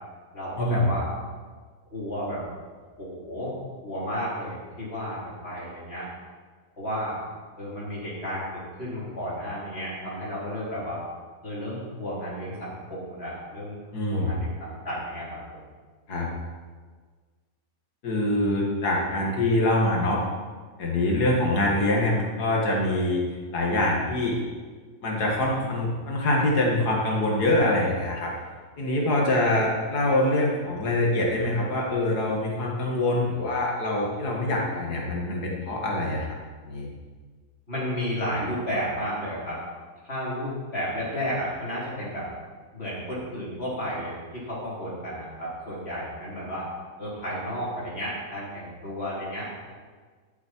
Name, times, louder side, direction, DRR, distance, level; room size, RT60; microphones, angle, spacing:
voice 1, 0.3-1.1 1.9-2.4 3.0-3.5 3.8-5.2 5.4-6.0 6.8-7.2 7.6-11.0 11.4-13.8 14.1-15.7 37.7-39.6 40.0-42.3 42.7-46.7 47.0-49.7, equal, 40° left, -8 dB, 4.6 m, -32 dB
voice 2, 13.9-14.3 16.1-16.3 18.0-20.2 20.8-23.2 23.5-24.4 25.0-28.3 28.8-36.4 36.7-36.9, left 1 dB, 80° left, -2 dB, 2.5 m, -24 dB
14.5 x 7.6 x 4.7 m, 1.5 s
omnidirectional pair, 1.7 m